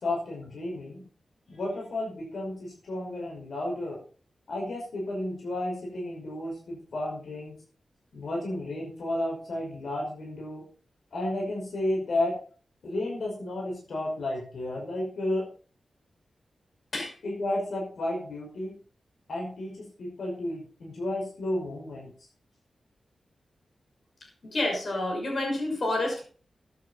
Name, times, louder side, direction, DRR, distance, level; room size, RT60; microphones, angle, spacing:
voice 1, 0.0-1.0 1.5-4.0 4.5-7.6 8.1-10.7 11.1-12.4 12.8-15.5 17.2-18.7 19.3-22.1, left 1 dB, 70° left, -1 dB, 5.6 m, -32 dB
voice 2, 24.4-26.2, left 2 dB, 50° left, 1 dB, 6.1 m, -29 dB
14.0 x 10.5 x 4.3 m, 0.40 s
wide cardioid pair, 105°, 0 cm